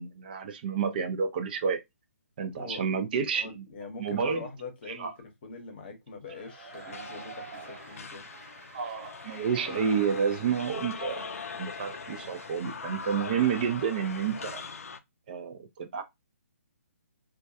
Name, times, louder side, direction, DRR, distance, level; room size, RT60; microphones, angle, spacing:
voice 1, 0.0-1.8 2.4-3.6 4.0-4.5 4.9-5.1 8.7-11.3 11.6-14.6 15.3-16.0, right 7 dB, 35° right, 0.4 m, -30 dB
voice 2, 3.3-8.8, left 4 dB, 40° left, 0.8 m, -43 dB
Cheering / Applause / Crowd, 6.3-13.9, right 6 dB, 55° right, 1.2 m, -50 dB
sound 1, 6.4-15.0, left 5 dB, 65° left, 0.4 m, -41 dB
2.2 x 2.2 x 2.6 m
figure-of-eight pair, 135°, 8 cm